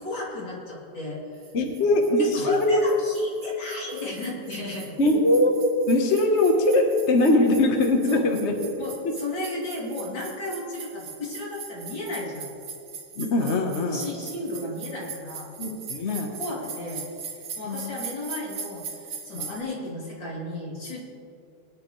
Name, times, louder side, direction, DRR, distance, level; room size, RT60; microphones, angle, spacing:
voice 1, 0.0-1.4 2.3-5.0 8.1-8.3 8.8-12.5 13.4-13.5 13.9-15.5 16.4-17.0 17.6-21.0, left 2 dB, 65° left, -5 dB, 3.6 m, -34 dB
sound 1, 1.4-19.6, right 6 dB, 65° right, 1.8 m, -41 dB
voice 2, 1.5-2.8 5.0-5.5 5.9-8.5 13.2-14.0 15.6-16.3 17.6-17.9 19.3-19.5, left 1 dB, 40° left, 2 dB, 1.1 m, -21 dB
20.5 x 10.5 x 3.2 m, 2.6 s
omnidirectional pair, 2.2 m